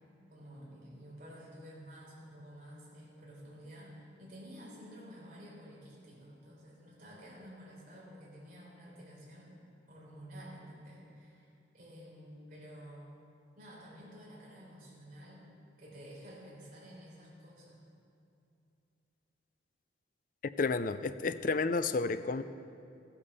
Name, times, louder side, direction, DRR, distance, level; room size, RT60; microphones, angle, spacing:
voice 1, 0.3-9.6 9.9-11.5 11.7-13.1 13.6-15.5 15.8-17.8, equal, 45° right, -5 dB, 3.9 m, -51 dB
voice 2, 20.6-22.4, left 4 dB, 45° left, 12 dB, 0.4 m, -31 dB
14.5 x 8.8 x 6.8 m, 2.6 s
head